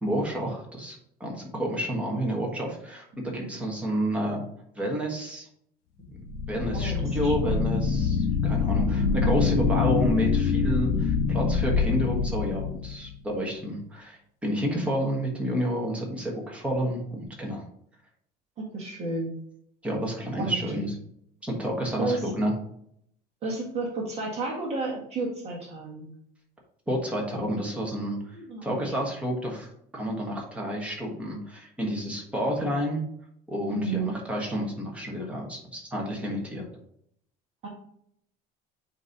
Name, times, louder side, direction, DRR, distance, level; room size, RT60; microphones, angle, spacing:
voice 1, 0.0-4.4 4.7-5.5 6.5-17.6 19.8-20.9 21.4-22.5 26.9-33.0 33.5-36.6, equal, 5° right, -2 dB, 1.3 m, -30 dB
sound 1, 6.1-13.2, left 5 dB, 90° left, 0.8 m, -25 dB
voice 2, 6.7-7.3 18.6-19.3 20.3-20.6 22.0-22.2 23.4-26.0 28.3-29.0 33.7-34.1 37.6-37.7, right 3 dB, 35° right, -2 dB, 1.6 m, -32 dB
8.7 x 2.9 x 3.9 m, 0.71 s
cardioid pair, 175°, 18 cm